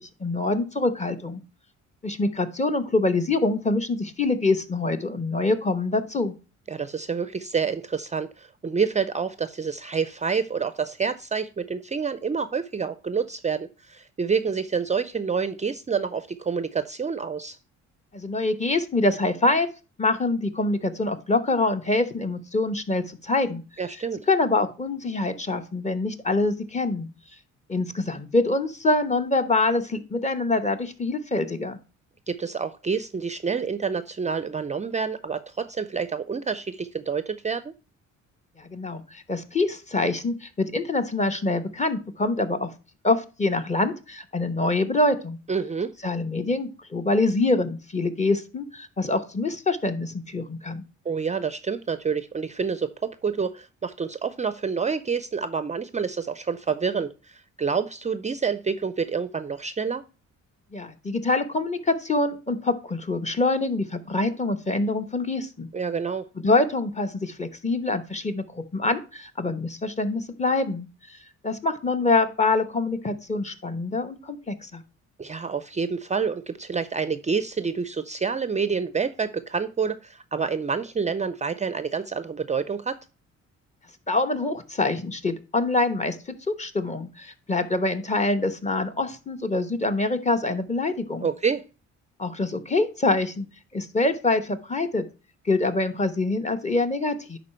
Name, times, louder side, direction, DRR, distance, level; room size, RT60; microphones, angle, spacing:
voice 1, 0.0-1.4 2.0-6.3 18.1-19.7 20.0-23.6 24.3-27.1 27.7-31.8 38.6-42.7 43.0-45.4 46.0-50.8 60.7-65.7 66.4-71.2 71.4-74.8 84.1-91.3 92.2-93.5 93.7-95.0 95.4-97.4, left 2 dB, 25° left, 8 dB, 1.0 m, -25 dB
voice 2, 6.7-17.6 23.8-24.2 32.3-37.7 45.5-45.9 51.0-60.0 65.7-66.3 75.2-83.0 91.2-91.6, right 5 dB, 25° right, 13 dB, 0.5 m, -28 dB
10.5 x 4.0 x 4.4 m, 0.33 s
cardioid pair, 90°, 30 cm